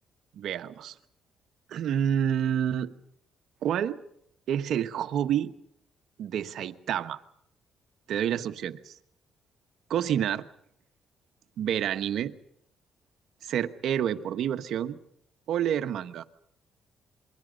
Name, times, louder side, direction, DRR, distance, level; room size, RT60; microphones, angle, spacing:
voice 1, 0.3-1.0 1.7-2.9 3.6-4.0 4.5-5.5 6.2-7.2 8.1-9.0 9.9-10.4 11.6-12.3 13.4-15.0 15.5-16.3, right 9 dB, 75° right, 1.2 m, -28 dB
28.0 x 23.0 x 5.2 m
cardioid pair, 90°, 0 cm